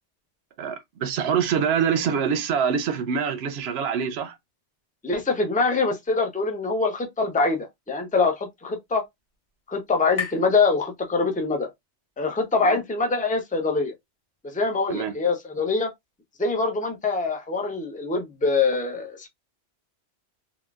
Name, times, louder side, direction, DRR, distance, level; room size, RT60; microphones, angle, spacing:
voice 1, 0.6-4.4 12.6-12.8 14.9-15.1, right 7 dB, 70° right, 0.8 m, -25 dB
voice 2, 5.0-9.0 9.7-11.7 12.2-13.9 14.4-15.9 16.4-19.3, left 4 dB, 10° left, 0.4 m, -24 dB
sound 1, 7.8-11.6, left 6 dB, 65° left, 1.4 m, -40 dB
3.8 x 2.2 x 2.3 m
omnidirectional pair, 1.2 m